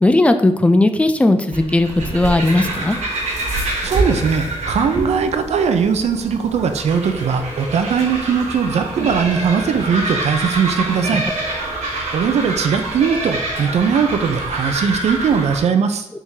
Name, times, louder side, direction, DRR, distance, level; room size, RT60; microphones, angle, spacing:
voice 1, 0.0-3.0, left 2 dB, 10° left, 8 dB, 0.3 m, -16 dB
sound 1, 1.5-15.6, right 2 dB, 90° right, 1.2 m, -26 dB
voice 2, 3.8-11.2 12.1-16.1, right 6 dB, 75° right, 7 dB, 0.5 m, -19 dB
4.6 x 3.6 x 2.8 m, 0.87 s
wide cardioid pair, 125°, 11 cm